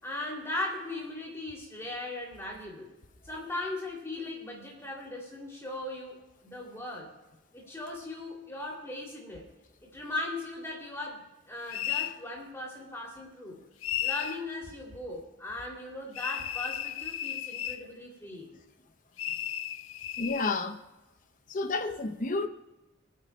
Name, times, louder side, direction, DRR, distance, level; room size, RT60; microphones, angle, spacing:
voice 1, 0.0-2.9 3.2-7.1 7.5-9.5 9.8-11.2 11.5-13.6 14.0-18.5, left 2 dB, 15° left, 2.7 m, -38 dB
sound 1, 11.7-12.2 13.8-14.4 16.1-17.8 19.2-20.6, left 11 dB, 90° left, 0.5 m, -34 dB
voice 2, 20.2-20.8 21.5-22.5, left 3 dB, 40° left, 0.7 m, -30 dB
25.5 x 9.1 x 2.2 m
head